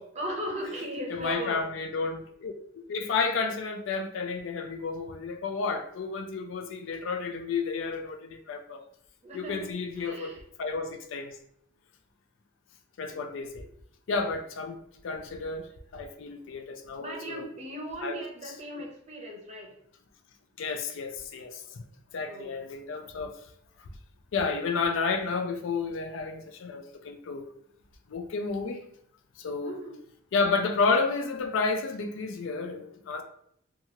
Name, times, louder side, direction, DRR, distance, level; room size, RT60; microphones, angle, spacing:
voice 1, 0.1-1.6 9.2-9.6 10.0-10.4 17.0-19.7 22.3-22.5 29.6-30.0, equal, 30° right, 0.6 m, -37 dB
voice 2, 1.1-8.8 9.3-10.3 10.6-11.4 13.0-13.7 14.1-17.4 18.0-18.2 18.4-18.5 20.6-21.8 22.1-23.4 24.3-27.4 28.1-28.8 29.4-29.8 30.3-33.2, left 4 dB, 70° left, 0.4 m, -31 dB
2.9 x 2.3 x 2.7 m
head